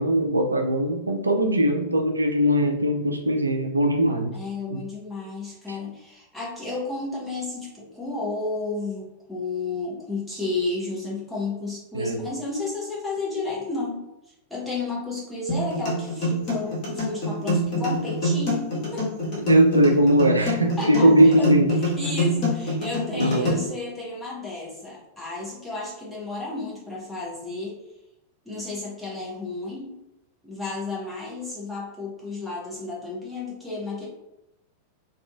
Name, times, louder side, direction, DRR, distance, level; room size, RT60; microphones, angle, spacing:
voice 1, 0.0-4.4 4.7-4.8 5.7-5.8 11.9-12.2 19.5-21.7 23.2-23.6, equal, 80° right, 4 dB, 0.3 m, -20 dB
voice 2, 4.3-19.1 20.4-21.5 21.8-27.8 28.4-30.0 30.4-34.1, left 3 dB, ahead, -8 dB, 0.9 m, -32 dB
sound 1, 15.5-23.5, equal, 40° left, 1.2 m, -26 dB
2.6 x 2.4 x 2.3 m, 0.90 s
figure-of-eight pair, 90°, 0 cm